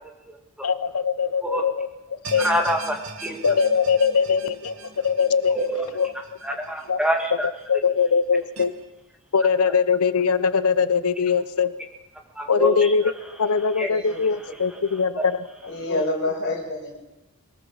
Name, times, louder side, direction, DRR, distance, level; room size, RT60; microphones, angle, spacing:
voice 1, 0.6-2.5 3.4-5.7 5.9-6.1 6.9-7.0 7.3-8.7 9.3-11.7 12.5-15.5 15.9-16.0, left 5 dB, 85° left, 14 dB, 0.8 m, -22 dB
sound 1, 2.2-7.5 7.8-7.9 8.6-8.7, right 3 dB, 75° right, 2.0 m, -40 dB
voice 2, 2.4-3.4 5.5-5.8 6.4-7.5 12.4-12.9 13.8-13.9, equal, 5° right, 2 dB, 2.1 m, -25 dB
voice 3, 13.8-14.2 14.8-14.9 15.7-17.0, left 2 dB, 50° left, -1 dB, 5.3 m, -28 dB
22.5 x 18.5 x 7.3 m, 1.0 s
head